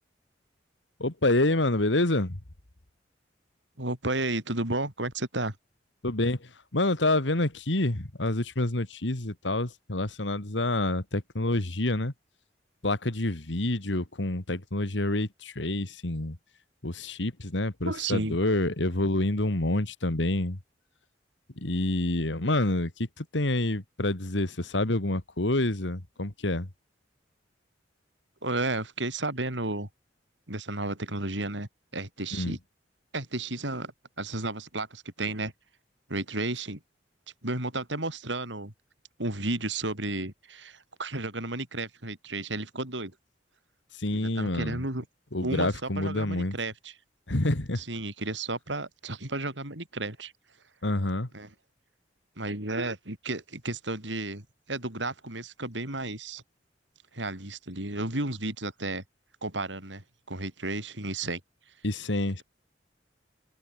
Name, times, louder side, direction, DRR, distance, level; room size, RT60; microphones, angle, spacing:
voice 1, 1.0-2.4 6.0-12.1 12.8-16.4 16.8-20.6 21.6-26.7 32.3-32.5 44.0-44.8 45.3-46.6 47.3-47.8 50.8-51.3 61.8-62.4, left 2 dB, 90° left, 2.3 m, -27 dB
voice 2, 3.8-5.5 17.9-18.4 28.4-29.9 30.5-32.6 33.1-33.9 34.2-35.5 36.1-36.8 37.4-38.7 39.2-43.1 44.1-45.0 45.4-46.9 47.7-50.3 51.3-51.5 52.4-56.4 57.1-59.0 59.4-61.4, right 2 dB, 85° right, 6.3 m, -33 dB
open air
head